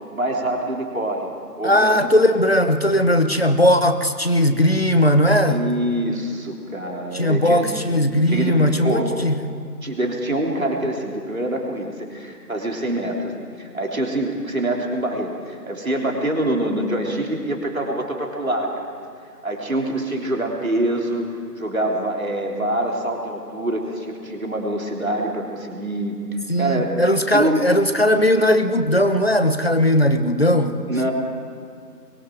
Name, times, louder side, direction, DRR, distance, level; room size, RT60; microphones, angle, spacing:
voice 1, 0.1-1.3 1.6-2.1 5.4-7.8 8.3-8.6 8.8-9.2 9.8-18.9 19.4-27.0 27.3-27.6 30.9-31.1, right 1 dB, 55° right, 0 dB, 3.5 m, -25 dB
voice 2, 1.6-5.6 7.1-9.4 26.5-30.7, left 1 dB, 40° left, 9 dB, 1.1 m, -18 dB
28.0 x 23.0 x 4.9 m, 2.2 s
figure-of-eight pair, 170°, 49 cm